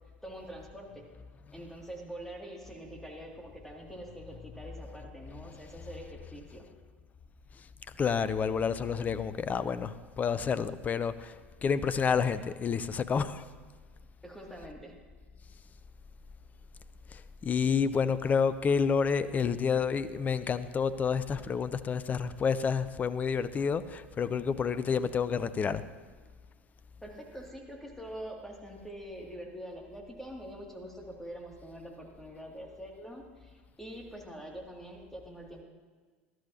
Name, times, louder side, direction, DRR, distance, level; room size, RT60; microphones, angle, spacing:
voice 1, 0.2-1.1 1.5-6.7 14.2-14.9 27.0-35.6, right 1 dB, 5° left, 0 dB, 2.4 m, -45 dB
voice 2, 8.0-11.3 11.6-13.4 17.4-25.8, left 6 dB, 25° left, 15 dB, 0.6 m, -29 dB
19.0 x 13.0 x 2.8 m, 1.4 s
figure-of-eight pair, 75°, 6 cm